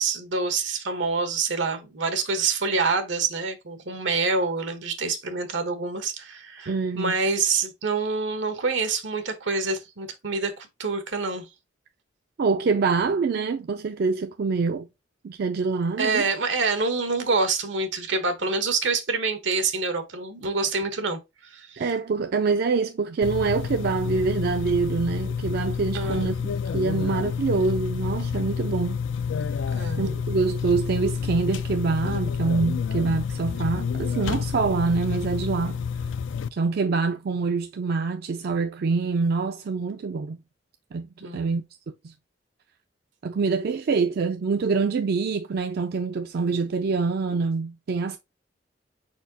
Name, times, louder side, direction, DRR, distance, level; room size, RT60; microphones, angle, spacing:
voice 1, 0.0-11.5 16.0-21.2 21.5-21.7 25.9-26.3 29.7-30.1 41.2-41.5, right 4 dB, 85° right, 1.1 m, -26 dB
voice 2, 6.7-7.2 12.4-14.9 15.2-16.3 21.8-26.4 26.7-29.0 30.0-35.8 36.5-40.4 40.9-41.6 42.0-42.1 43.2-48.2, right 4 dB, 55° right, 0.4 m, -25 dB
sound 1, 23.2-36.5, left 6 dB, 85° left, 0.3 m, -29 dB
4.5 x 4.3 x 2.7 m
head